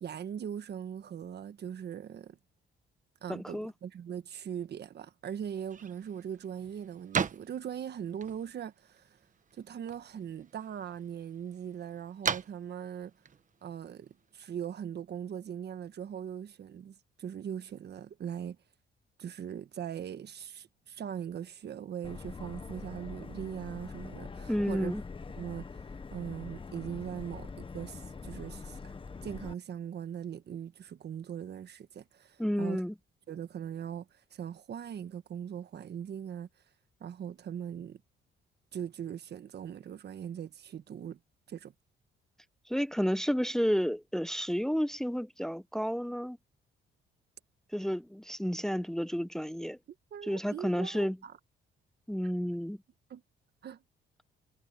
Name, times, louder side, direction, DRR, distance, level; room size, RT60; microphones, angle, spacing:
voice 1, 0.0-2.4 3.2-9.2 9.5-13.1 13.6-18.6 19.2-24.9 25.4-25.7 26.1-28.9 29.2-32.8 33.3-36.5 37.0-38.0 38.7-41.2 41.5-41.7 50.1-51.3 53.1-53.2 53.6-53.8, right 9 dB, 60° right, 1.4 m, -40 dB
voice 2, 3.3-3.7 24.5-25.0 32.4-32.9 42.7-46.4 47.7-49.8 50.2-51.2 52.1-52.8, equal, ahead, 0.9 m, -31 dB
sound 1, 5.5-14.6, right 6 dB, 40° right, 1.3 m, -40 dB
Subway metro underground, 22.0-29.5, left 4 dB, 25° left, 1.3 m, -44 dB
cardioid pair, 90°, 20 cm